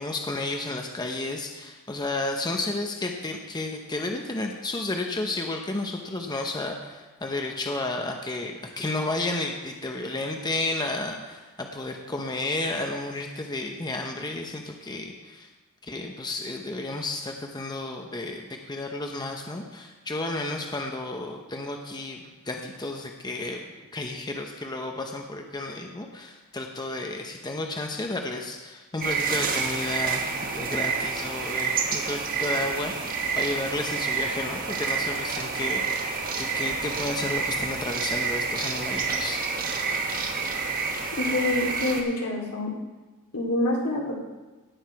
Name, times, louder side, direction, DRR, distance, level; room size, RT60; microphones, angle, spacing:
voice 1, 0.0-15.5 15.8-22.2 22.4-23.7 23.9-39.4, left 2 dB, 20° left, 3 dB, 0.7 m, -32 dB
sound 1, 29.0-42.0, right 5 dB, 40° right, 1.2 m, -28 dB
voice 2, 41.2-42.7 43.3-44.2, left 2 dB, 75° left, -1 dB, 2.4 m, -26 dB
17.0 x 6.3 x 4.7 m, 1.2 s
head